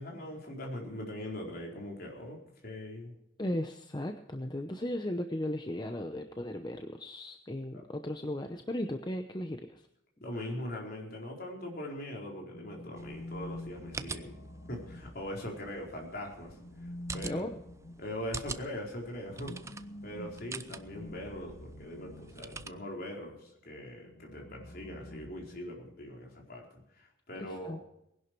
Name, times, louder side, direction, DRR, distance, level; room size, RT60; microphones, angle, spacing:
voice 1, 0.0-3.1 10.2-14.4 14.7-16.6 17.1-17.5 18.0-19.6 20.0-27.8, left 1 dB, 50° left, -1 dB, 4.4 m, -41 dB
voice 2, 3.4-9.8 17.2-17.6 27.4-27.8, left 1 dB, 20° left, 6 dB, 0.8 m, -36 dB
sound 1, 12.5-15.8 16.5-23.1 24.1-26.0, left 1 dB, 70° left, 1.3 m, -48 dB
sound 2, 13.0-22.7, right 4 dB, 15° right, 0.5 m, -46 dB
20.0 x 11.0 x 4.6 m, 0.80 s
head